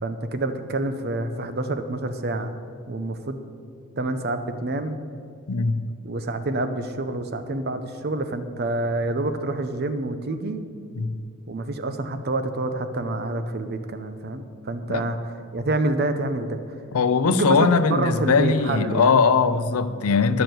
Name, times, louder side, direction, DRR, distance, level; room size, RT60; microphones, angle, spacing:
voice 1, 0.0-2.6 2.9-3.4 4.0-5.0 6.0-10.6 11.5-15.2 15.5-16.6 17.2-19.2, right 2 dB, 45° right, 9 dB, 0.7 m, -27 dB
voice 2, 5.5-5.8 11.0-11.2 14.9-15.1 16.9-20.4, left 5 dB, 80° left, 13 dB, 0.6 m, -20 dB
10.5 x 6.9 x 7.7 m, 2.3 s
head